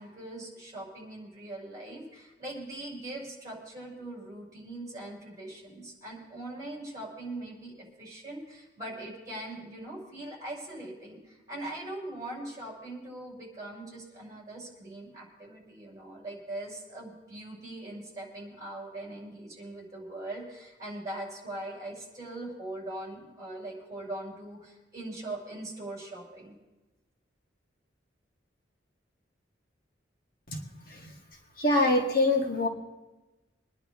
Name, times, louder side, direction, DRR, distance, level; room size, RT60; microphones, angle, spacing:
voice 1, 0.0-26.5, right 1 dB, 20° right, -3 dB, 5.6 m, -41 dB
voice 2, 31.6-32.7, left 2 dB, 50° left, 1 dB, 1.7 m, -24 dB
24.5 x 10.5 x 3.6 m, 1.1 s
head